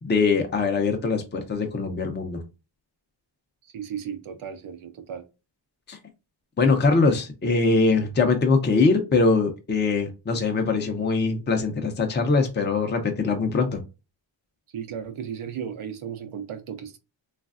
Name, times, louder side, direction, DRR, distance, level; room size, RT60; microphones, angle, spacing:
voice 1, 0.0-2.4 5.9-6.0 6.6-13.8, left 4 dB, 20° left, 0.6 m, -22 dB
voice 2, 3.6-5.2 14.7-17.0, right 8 dB, 75° right, 0.7 m, -35 dB
3.1 x 2.4 x 2.4 m
wide cardioid pair, 100°, 49 cm